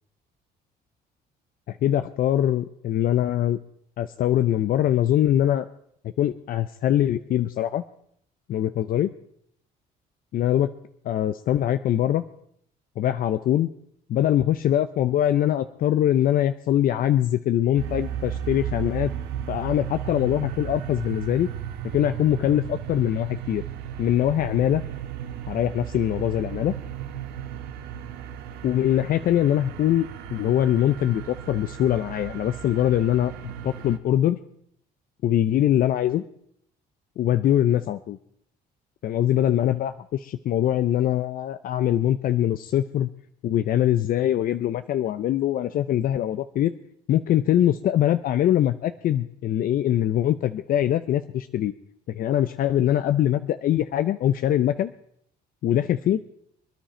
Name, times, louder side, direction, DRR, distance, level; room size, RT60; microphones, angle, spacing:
voice 1, 1.7-3.6 4.0-5.7 6.0-7.8 8.5-9.1 10.3-10.7 11.0-12.2 13.0-13.7 14.1-19.1 19.5-21.5 21.9-23.6 24.0-24.8 25.5-26.7 28.6-34.4 35.2-36.2 37.2-38.2 39.0-43.1 43.4-46.7 47.1-51.7 52.1-54.9 55.6-56.2, left 11 dB, 60° left, 11 dB, 0.6 m, -23 dB
sound 1, 17.8-34.0, right 10 dB, 85° right, 1.3 m, -35 dB
25.5 x 10.5 x 4.4 m, 0.69 s
cardioid pair, 110°, 17 cm